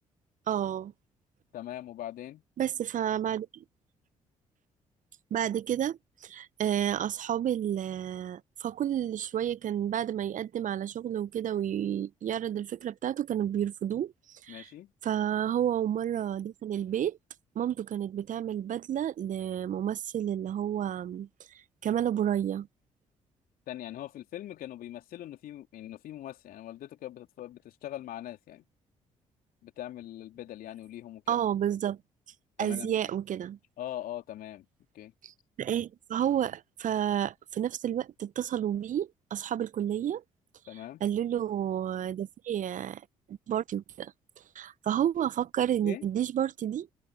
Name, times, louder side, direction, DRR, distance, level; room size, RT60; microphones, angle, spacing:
voice 1, 0.5-0.9 2.6-3.5 5.3-14.7 15.0-17.2 17.5-21.3 21.8-22.7 31.3-32.0 32.6-33.6 35.2-35.3 35.6-40.2 41.0-43.0 43.3-44.1 44.5-46.9, right 10 dB, 50° right, 1.1 m, -30 dB
voice 2, 1.5-2.4 14.5-14.9 23.7-28.6 29.6-31.4 32.6-33.1 33.8-34.7 34.9-35.1 40.7-41.0 45.8-46.0, left 12 dB, 60° left, 3.8 m, -41 dB
figure-of-eight pair, 45°, 17 cm